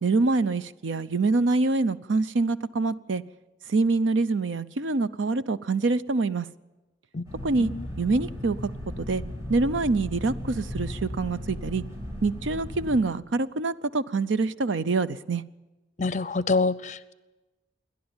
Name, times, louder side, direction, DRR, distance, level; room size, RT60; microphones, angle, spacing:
voice 1, 0.0-3.2 3.7-6.5 7.4-7.7 8.0-8.6 9.0-9.2 9.5-11.8 12.2-15.4, right 3 dB, 80° right, 0.6 m, -25 dB
sound 1, 7.3-13.0, left 1 dB, 15° right, 5.1 m, -36 dB
voice 2, 16.0-17.1, left 3 dB, 40° left, 0.6 m, -26 dB
28.0 x 11.5 x 8.9 m
head